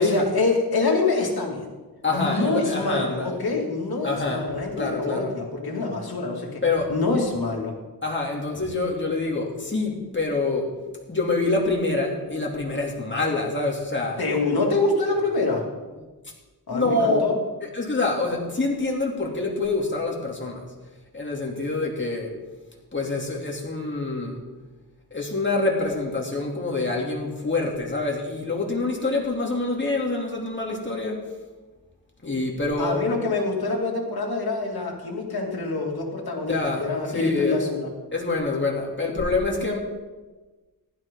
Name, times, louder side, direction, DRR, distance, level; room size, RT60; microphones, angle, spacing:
voice 1, 0.0-1.7 2.1-6.6 6.9-7.7 14.2-15.6 16.7-17.3 32.8-37.9, left 3 dB, 70° left, -1 dB, 2.6 m, -25 dB
voice 2, 2.0-3.4 4.0-4.5 4.8-5.4 6.6-6.9 8.0-10.7 11.1-14.2 16.7-17.2 17.6-20.6 21.1-22.3 22.9-24.4 25.1-31.3 32.2-33.1 36.4-37.6 38.1-39.8, left 3 dB, 30° left, -1 dB, 2.7 m, -26 dB
15.0 x 12.0 x 3.8 m, 1.2 s
wide cardioid pair, 85°, 38 cm